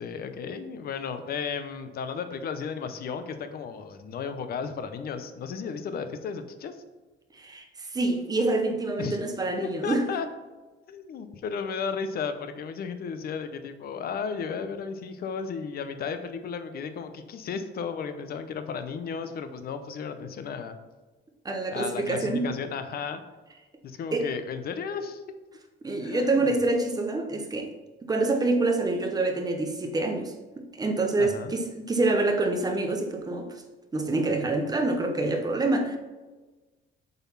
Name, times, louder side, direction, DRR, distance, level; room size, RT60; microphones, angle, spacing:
voice 1, 0.0-6.8 9.0-9.2 9.6-10.3 10.9-20.8 21.7-23.2 23.8-25.2 26.0-26.5 31.2-31.5, left 6 dB, 50° left, 9 dB, 0.7 m, -34 dB
voice 2, 7.3-10.0 21.4-22.4 24.1-24.3 25.8-27.7 28.1-30.3 30.7-33.5 33.9-36.0, right 2 dB, 20° right, 4 dB, 0.8 m, -26 dB
7.2 x 4.0 x 5.6 m, 1.2 s
cardioid pair, 165°, 21 cm